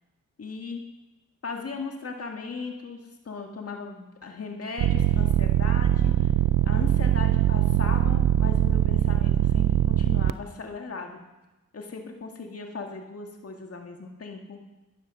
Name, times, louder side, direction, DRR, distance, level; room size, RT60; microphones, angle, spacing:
voice 1, 0.4-0.8 1.4-3.0 3.2-6.3 6.6-11.2 11.7-14.6, left 4 dB, 50° left, 2 dB, 1.9 m, -37 dB
sound 1, 4.8-10.3, right 12 dB, 80° right, 0.5 m, -22 dB
14.0 x 10.5 x 5.5 m, 1.0 s
cardioid pair, 70°, 32 cm